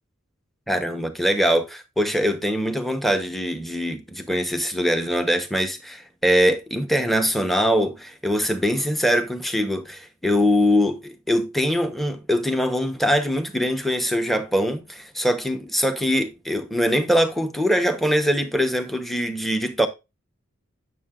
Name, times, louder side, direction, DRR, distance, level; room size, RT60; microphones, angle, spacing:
voice 1, 0.7-19.9, equal, ahead, 0.8 m, -22 dB
9.3 x 6.7 x 2.4 m
head